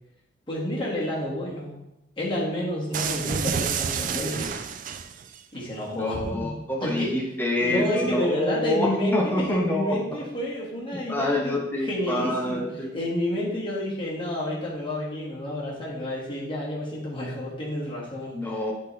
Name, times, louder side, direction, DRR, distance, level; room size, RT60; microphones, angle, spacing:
voice 1, 0.5-1.8 2.2-4.6 5.5-6.5 6.8-7.1 7.6-12.6 12.9-18.4, left 1 dB, 25° left, -5 dB, 1.7 m, -29 dB
sound 1, 2.9-5.4, right 7 dB, 45° right, 0.3 m, -29 dB
voice 2, 5.9-10.1 10.9-13.0 18.3-18.7, left 1 dB, 10° left, -1 dB, 0.8 m, -27 dB
8.1 x 4.0 x 3.2 m, 0.89 s
head